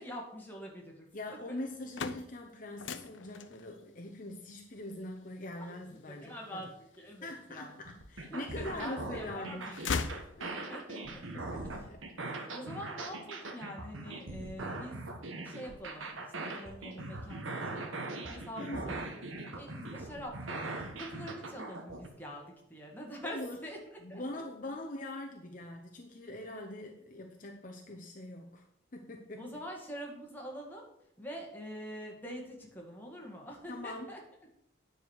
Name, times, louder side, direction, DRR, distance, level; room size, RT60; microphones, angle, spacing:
voice 1, 0.0-1.1 5.6-5.7 6.1-7.7 8.3-10.0 10.6-11.2 11.6-11.9 12.5-15.0 15.4-18.0 18.3-23.8 24.1-24.4 29.4-30.9 31.2-34.2, equal, 10° left, -1 dB, 2.0 m, -45 dB
voice 2, 1.1-6.6 7.2-9.7 10.4-10.7 11.3-12.3 18.6-18.9 23.2-23.6 24.0-28.7 28.9-29.4 33.7-34.1, left 1 dB, 45° left, 2 dB, 0.8 m, -43 dB
sound 1, 1.6-7.6 8.2-9.0 9.3-10.9, left 5 dB, 70° left, 0.6 m, -40 dB
sound 2, 7.8-22.1, right 2 dB, 90° right, 1.4 m, -41 dB
9.7 x 4.9 x 6.5 m, 0.77 s
head